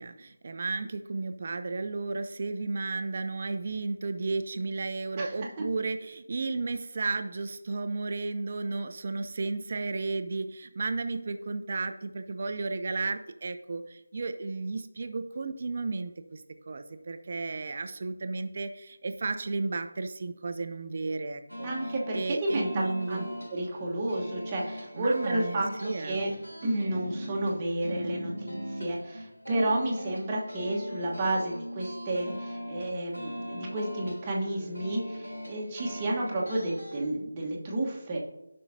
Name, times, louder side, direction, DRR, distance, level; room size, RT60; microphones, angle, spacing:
voice 1, 0.0-21.7 22.1-23.3 25.0-26.3, right 3 dB, 40° right, 9 dB, 0.6 m, -33 dB
sound 1, 21.5-37.0, equal, 90° left, 3.3 m, -40 dB
voice 2, 21.6-23.2 23.5-26.3 26.6-38.2, right 1 dB, 20° right, -4 dB, 1.2 m, -31 dB
14.5 x 5.6 x 2.7 m, 0.94 s
figure-of-eight pair, 160°, 0 cm